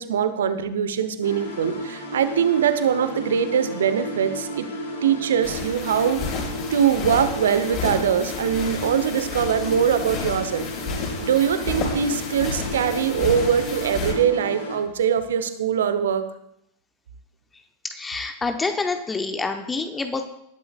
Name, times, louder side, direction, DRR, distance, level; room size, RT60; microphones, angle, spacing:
voice 1, 0.0-4.7 5.0-6.4 6.7-10.7 11.2-16.3, right 8 dB, 65° right, 11 dB, 1.1 m, -22 dB
sound 1, 1.2-14.8, left 1 dB, 75° left, 4.4 m, -33 dB
sound 2, 5.4-14.1, left 4 dB, 35° left, 4.6 m, -31 dB
voice 2, 17.8-20.3, left 3 dB, 15° left, 6 dB, 1.0 m, -27 dB
20.5 x 11.5 x 2.5 m, 0.75 s
figure-of-eight pair, 90°, 0 cm